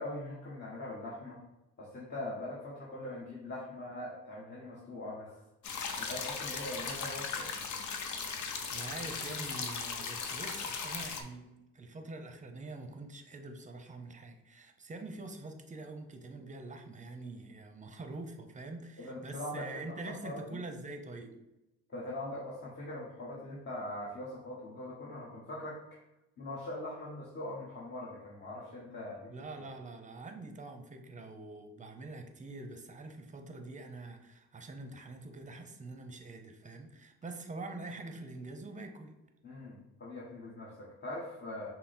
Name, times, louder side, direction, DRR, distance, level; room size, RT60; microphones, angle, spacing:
voice 1, 0.0-1.4 1.8-5.4 6.0-7.5 19.0-20.6 21.9-26.0 26.4-29.3 39.4-41.7, left 1 dB, 35° left, -5 dB, 1.3 m, -42 dB
sound 1, 5.6-11.2, left 5 dB, 70° left, 0.7 m, -38 dB
voice 2, 8.7-21.4 29.3-39.1, right 2 dB, 25° right, 6 dB, 0.7 m, -45 dB
5.8 x 2.1 x 4.3 m, 0.95 s
cardioid pair, 90°, 30 cm